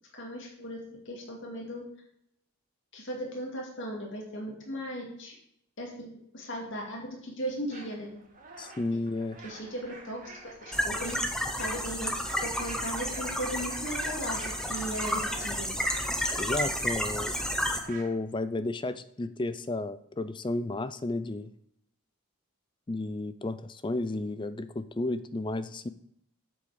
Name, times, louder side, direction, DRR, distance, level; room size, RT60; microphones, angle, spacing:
voice 1, 0.1-1.8 2.9-5.3 5.8-8.1 9.4-11.2 11.6-12.1 12.4-15.7, equal, 55° left, -1 dB, 2.3 m, -37 dB
sound 1, 7.7-18.1, right 3 dB, 35° right, 1.6 m, -47 dB
voice 2, 8.6-9.4 16.4-17.3 17.9-21.5 22.9-25.9, left 2 dB, 20° left, 13 dB, 0.4 m, -32 dB
sound 2, 10.7-17.8, equal, 5° left, 0.8 m, -31 dB
8.2 x 6.1 x 7.1 m, 0.73 s
head